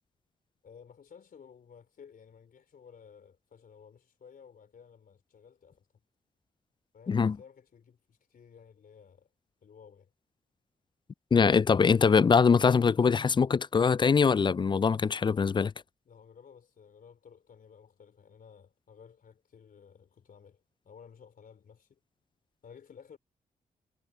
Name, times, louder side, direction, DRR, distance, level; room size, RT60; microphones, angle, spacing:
voice 1, 0.6-5.9 6.9-9.3 9.6-10.1 16.1-22.0 22.6-23.2, left 7 dB, 65° left, 3.5 m, -55 dB
voice 2, 11.3-15.7, left 5 dB, 30° left, 0.3 m, -23 dB
supercardioid pair, 50°, 16 cm